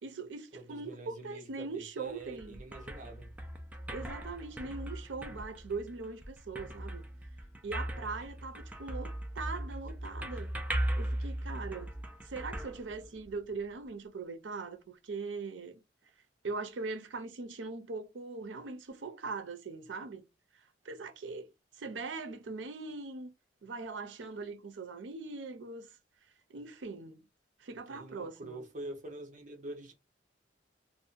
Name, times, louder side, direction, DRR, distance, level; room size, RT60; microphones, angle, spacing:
voice 1, 0.0-2.6 3.9-7.0 7.6-10.5 11.0-11.9 12.2-15.8 16.4-20.2 20.8-21.5 21.8-23.3 23.6-25.9 26.5-27.2 27.6-28.6, right 3 dB, 85° right, 0.6 m, -41 dB
voice 2, 0.5-3.3 27.9-29.9, right 2 dB, 45° right, 0.9 m, -45 dB
sound 1, 2.1-13.5, right 1 dB, 10° right, 0.4 m, -39 dB
2.6 x 2.1 x 2.5 m
head